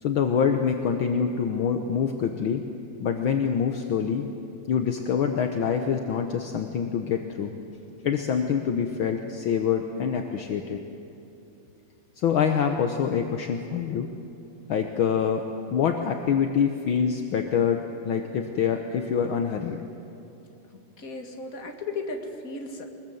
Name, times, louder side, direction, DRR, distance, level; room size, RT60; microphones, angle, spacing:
voice 1, 0.0-2.6 3.0-4.3 4.7-7.5 8.0-10.8 12.2-14.1 14.7-19.8, left 7 dB, 60° left, 5 dB, 1.3 m, -25 dB
voice 2, 20.7-22.8, left 3 dB, 30° left, 3 dB, 2.1 m, -35 dB
24.0 x 21.0 x 7.9 m, 2.9 s
omnidirectional pair, 3.4 m